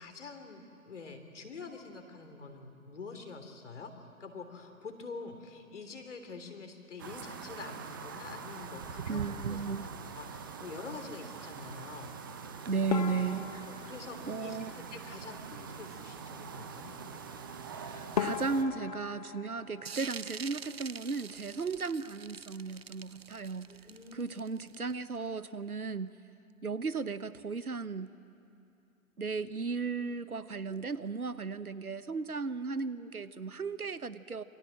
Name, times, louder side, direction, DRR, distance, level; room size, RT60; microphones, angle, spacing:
voice 1, 0.0-3.9 4.2-12.1 12.7-12.9 13.7-17.0 23.7-24.3, left 4 dB, 55° left, 6 dB, 3.4 m, -46 dB
sound 1, 7.0-18.6, right 6 dB, 15° right, 0.8 m, -43 dB
voice 2, 9.1-9.9 12.6-13.9 14.2-14.7 17.8-23.7 24.1-26.1 26.6-28.1 29.2-34.4, right 4 dB, 80° right, 15 dB, 1.1 m, -35 dB
sound 2, 12.9-15.4 17.6-17.7 18.1-20.9 21.2-22.0 22.3-22.5 22.8-22.9 23.5-23.8, left 7 dB, 25° left, 0.9 m, -39 dB
sound 3, 19.9-25.2, right 6 dB, 45° right, 0.5 m, -45 dB
28.0 x 24.0 x 7.6 m, 2.7 s
figure-of-eight pair, 140°, 43 cm